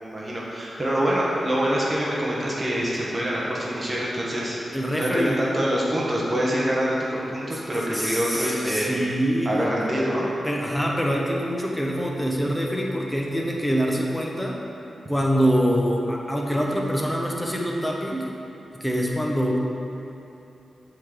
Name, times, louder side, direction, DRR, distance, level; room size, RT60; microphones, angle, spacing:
voice 1, 0.0-4.6 5.0-9.0 9.4-10.3, equal, 25° right, -5 dB, 1.2 m, -25 dB
voice 2, 4.7-5.4 7.9-9.7 10.4-14.6 15.1-18.3 18.7-19.6, equal, 5° left, -1 dB, 1.0 m, -25 dB
7.6 x 3.9 x 5.1 m, 2.9 s
cardioid pair, 75°, 0 cm